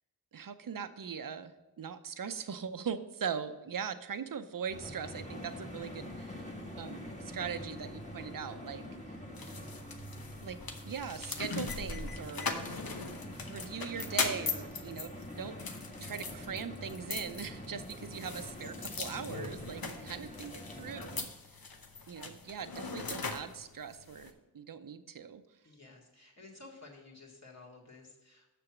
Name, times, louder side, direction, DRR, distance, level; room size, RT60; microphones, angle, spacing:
voice 1, 0.3-9.2 10.4-12.5 13.5-15.1 15.4-15.6 16.0-21.6 22.1-25.4, right 7 dB, 60° right, 11 dB, 0.7 m, -41 dB
sound 1, 4.7-21.2, equal, 20° left, 1.6 m, -45 dB
sound 2, 9.3-24.3, left 4 dB, 65° left, 1.0 m, -40 dB
voice 2, 18.2-18.5 25.6-28.5, left 3 dB, 45° left, -3 dB, 2.2 m, -53 dB
6.7 x 6.1 x 6.0 m, 1.1 s
cardioid pair, 50°, 38 cm